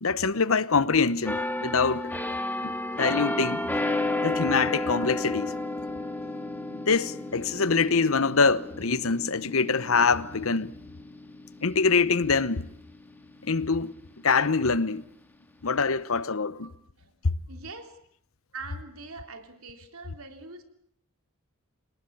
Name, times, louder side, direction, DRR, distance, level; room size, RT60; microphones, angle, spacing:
voice 1, 0.0-2.1 2.6-3.6 4.2-5.5 6.7-10.7 11.6-12.7 13.4-13.9 14.2-15.0 15.6-16.7 17.2-17.3, left 4 dB, 70° left, 1.0 m, -24 dB
sound 1, 1.3-12.8 13.2-13.5, left 2 dB, 10° left, 2.1 m, -32 dB
sound 2, 3.5-16.3, left 3 dB, 85° left, 5.0 m, -52 dB
voice 2, 16.6-17.1 17.5-18.0 18.5-20.6, right 3 dB, 75° right, 3.4 m, -43 dB
28.0 x 18.5 x 8.7 m
head